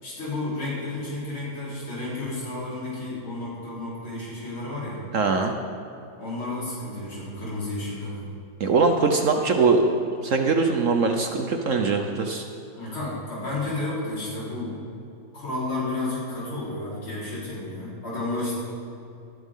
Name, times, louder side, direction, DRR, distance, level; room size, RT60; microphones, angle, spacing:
voice 1, 0.0-5.1 6.2-8.2 12.7-14.8 15.3-18.5, left 2 dB, 90° left, -8 dB, 5.1 m, -31 dB
voice 2, 5.1-5.5 8.6-9.8 10.2-12.4, right 4 dB, 60° right, 4 dB, 0.8 m, -22 dB
18.5 x 12.5 x 3.7 m, 2.6 s
omnidirectional pair, 2.2 m